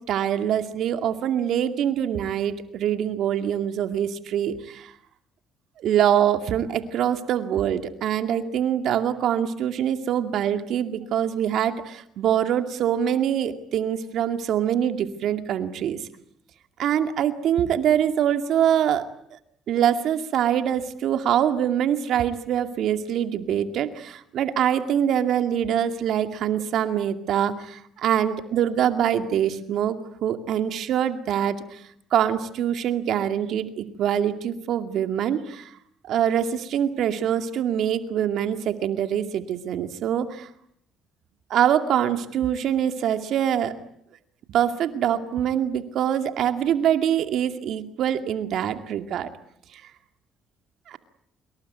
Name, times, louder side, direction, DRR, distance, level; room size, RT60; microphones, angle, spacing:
voice 1, 0.1-4.9 5.8-16.0 16.8-19.0 19.7-31.8 32.1-35.7 36.0-40.5 41.5-43.7 44.5-49.3 50.9-51.0, right 9 dB, 70° right, 8 dB, 2.3 m, -24 dB
26.0 x 23.0 x 9.4 m, 0.69 s
supercardioid pair, 75°, 0 cm